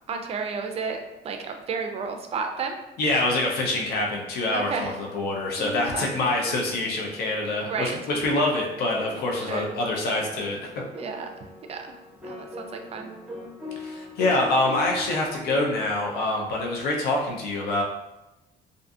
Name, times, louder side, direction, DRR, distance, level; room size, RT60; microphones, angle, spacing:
voice 1, 0.1-1.0 1.2-2.8 4.5-4.9 5.9-6.1 7.6-7.9 9.4-9.6 10.9-11.3 11.7-11.9 12.2-13.1, right 5 dB, 35° right, 4 dB, 0.4 m, -32 dB
voice 2, 3.0-10.6 13.8-17.8, left 2 dB, 70° left, -1 dB, 0.5 m, -25 dB
sound 1, 5.6-15.9, left 1 dB, 5° right, 0.8 m, -40 dB
2.5 x 2.3 x 2.5 m, 0.97 s
cardioid pair, 110°, 17 cm